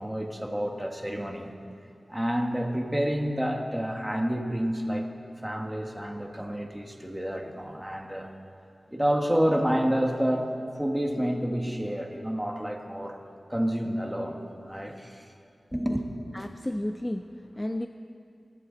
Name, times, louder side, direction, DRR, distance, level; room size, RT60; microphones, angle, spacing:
voice 1, 0.0-1.5 2.1-5.1 5.4-8.3 8.9-13.2 13.5-14.4 14.6-15.3 15.7-16.1, equal, 5° right, 3 dB, 1.5 m, -29 dB
voice 2, 16.3-17.9, left 1 dB, 15° left, 7 dB, 0.4 m, -32 dB
22.0 x 12.5 x 4.0 m, 2.5 s
wide cardioid pair, 75°, 0 cm